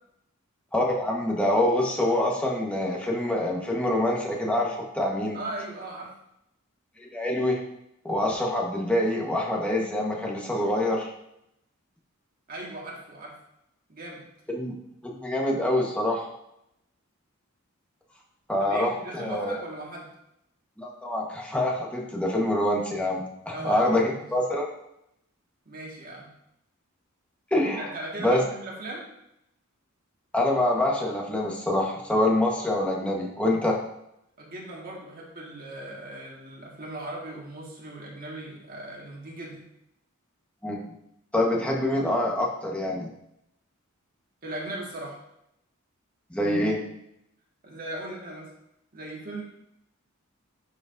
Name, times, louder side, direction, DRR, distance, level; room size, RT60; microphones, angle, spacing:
voice 1, 0.7-5.4 7.1-7.6 8.0-11.1 14.5-14.7 15.2-16.3 18.5-19.6 20.8-24.7 27.5-27.9 28.2-28.4 30.3-33.8 40.6-40.8 41.3-43.1 46.3-46.8, left 1 dB, 5° left, -2 dB, 1.2 m, -25 dB
voice 2, 5.3-6.1 12.5-13.4 13.9-14.2 18.6-20.1 23.5-24.3 25.6-26.3 27.8-29.0 34.4-39.7 44.4-45.2 47.6-48.5 48.9-49.4, right 1 dB, 45° right, -2 dB, 1.7 m, -38 dB
11.5 x 4.8 x 2.6 m, 0.80 s
head